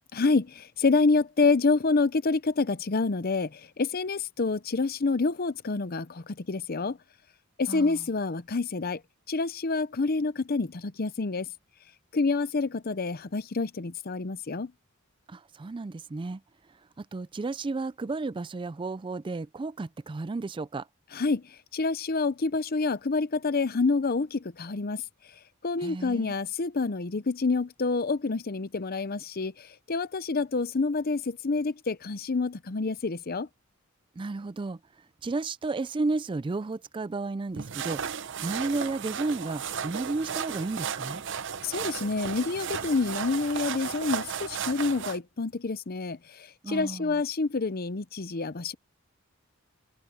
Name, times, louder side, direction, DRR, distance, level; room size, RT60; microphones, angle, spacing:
voice 1, 0.1-7.0 7.6-9.0 9.3-11.5 12.1-14.7 21.1-21.4 21.7-25.0 25.6-33.5 41.6-48.7, left 3 dB, 45° left, 0.7 m, -28 dB
voice 2, 7.7-8.0 15.3-16.4 17.0-20.9 25.8-26.3 34.2-34.8 35.2-38.0 38.4-41.2 46.6-47.2, right 3 dB, 25° right, 0.3 m, -33 dB
sound 1, 37.6-45.2, right 7 dB, 60° right, 0.7 m, -34 dB
open air
head